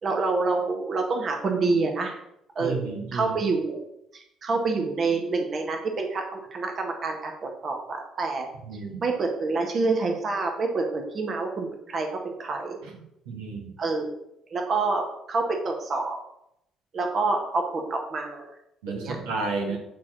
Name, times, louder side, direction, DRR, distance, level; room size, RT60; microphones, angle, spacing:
voice 1, 0.0-2.2 2.5-3.8 4.1-8.5 9.0-12.8 13.8-14.1 14.5-16.2 16.9-18.5 18.9-19.2 19.7-19.8, right 3 dB, 45° right, 3 dB, 1.6 m, -27 dB
voice 2, 2.6-3.3 8.6-9.0 13.3-13.7 18.8-19.8, right 3 dB, 80° right, 0 dB, 1.7 m, -31 dB
9.2 x 4.5 x 6.2 m, 0.80 s
hypercardioid pair, 50°, 0 cm